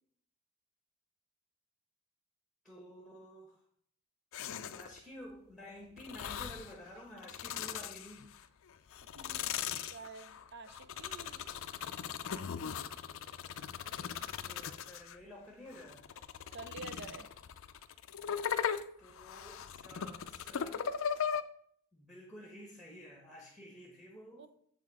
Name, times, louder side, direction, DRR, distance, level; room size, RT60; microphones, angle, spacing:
voice 1, 2.6-3.6 4.7-8.3 14.4-16.0 19.0-20.8 21.9-24.5, equal, ahead, -1 dB, 1.2 m, -51 dB
sound 1, 4.3-5.0 6.0-6.7 7.2-8.4 8.9-15.2 15.7-21.4, left 8 dB, 60° left, 0.4 m, -39 dB
voice 2, 9.2-11.6 16.5-17.3 24.4-24.5, right 4 dB, 50° right, 10 dB, 0.6 m, -49 dB
7.6 x 5.6 x 4.8 m, 0.65 s
head